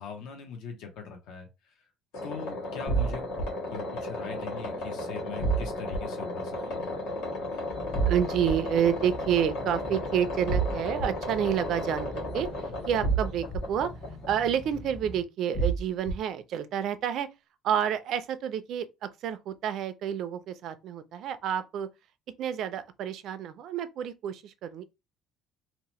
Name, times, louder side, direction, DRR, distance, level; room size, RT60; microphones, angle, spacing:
voice 1, 0.0-1.7 2.2-3.3 3.7-6.9, left 6 dB, 65° left, 0.6 m, -41 dB
sound 1, 2.1-14.8, left 1 dB, 85° left, 1.5 m, -35 dB
sound 2, 2.9-3.4 5.4-6.0 7.9-8.5 10.5-11.1 13.0-13.6 15.5-16.1, right 5 dB, 40° left, 1.0 m, -27 dB
sound 3, 7.7-15.2, left 1 dB, 10° left, 0.5 m, -43 dB
voice 2, 8.1-13.9 14.3-17.3 17.6-21.9 22.4-24.8, right 9 dB, 50° right, 0.3 m, -29 dB
2.8 x 2.0 x 3.0 m
cardioid pair, 170°, 0 cm